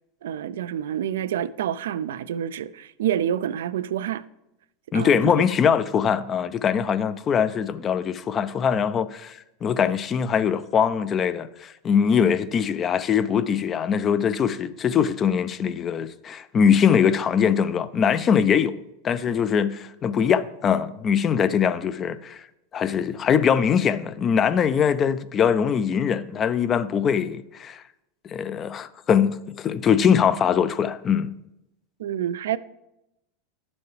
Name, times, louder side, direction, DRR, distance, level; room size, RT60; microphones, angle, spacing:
voice 1, 0.2-4.2 4.9-5.2 32.0-32.6, right 10 dB, 80° right, 0.4 m, -27 dB
voice 2, 4.9-18.8 19.0-22.5 22.7-27.8 28.2-31.3, left 7 dB, 30° left, 0.5 m, -22 dB
11.0 x 7.0 x 3.3 m
hypercardioid pair, 105°, 0 cm